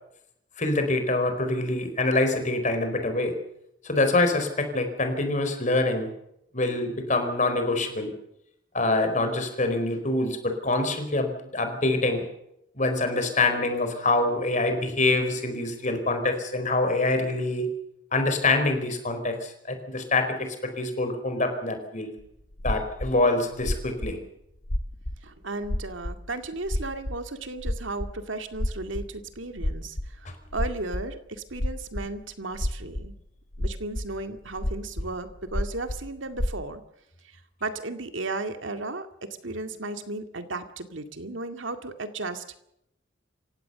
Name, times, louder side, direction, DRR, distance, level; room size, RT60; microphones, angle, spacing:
voice 1, 0.6-3.3 3.8-6.1 6.5-8.1 8.7-12.2 12.8-17.7 18.1-22.1 22.6-24.2, left 2 dB, 40° left, 6 dB, 4.6 m, -25 dB
sound 1, 22.2-22.3 22.5-23.1 23.5-24.1 24.6-25.2 25.6-25.8 26.0-26.2 26.5-27.2 27.6-28.1 28.5-30.2 30.5-31.1 31.5-32.1 32.5-33.1 33.5-36.6, left 1 dB, 80° left, 1.8 m, -29 dB
voice 2, 25.2-33.1 33.6-36.8 37.2-42.6, right 2 dB, 75° right, 8 dB, 2.2 m, -35 dB
28.0 x 16.5 x 6.9 m, 0.78 s
head